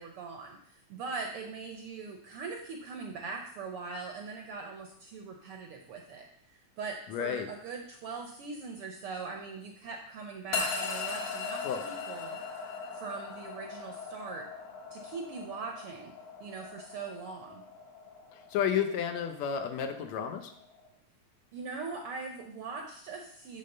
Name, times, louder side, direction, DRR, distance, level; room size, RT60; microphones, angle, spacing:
voice 1, 0.0-12.4 12.9-14.5 14.9-16.1 16.4-17.6 21.5-23.6, right 4 dB, 70° right, 2 dB, 1.4 m, -41 dB
voice 2, 7.1-7.5 11.6-11.8 18.5-20.5, left 8 dB, 75° left, 6 dB, 2.0 m, -31 dB
sound 1, 10.5-20.9, left 5 dB, 60° left, 2.4 m, -40 dB
9.2 x 3.6 x 6.5 m, 0.67 s
omnidirectional pair, 3.4 m